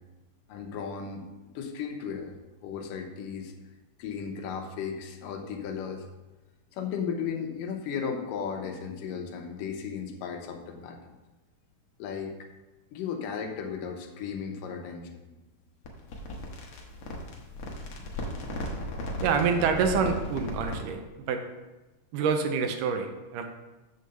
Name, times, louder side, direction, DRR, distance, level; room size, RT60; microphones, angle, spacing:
voice 1, 0.5-1.2 1.6-2.3 2.6-3.5 4.0-6.0 6.7-11.2 12.0-12.5 12.9-15.2, left 6 dB, 80° left, 4 dB, 2.5 m, -35 dB
sound 1, 15.8-20.9, left 1 dB, 65° left, 1.5 m, -36 dB
voice 2, 19.2-21.4 22.1-23.5, right 6 dB, 85° right, 6 dB, 2.3 m, -27 dB
8.2 x 3.8 x 6.6 m, 1.1 s
omnidirectional pair, 3.8 m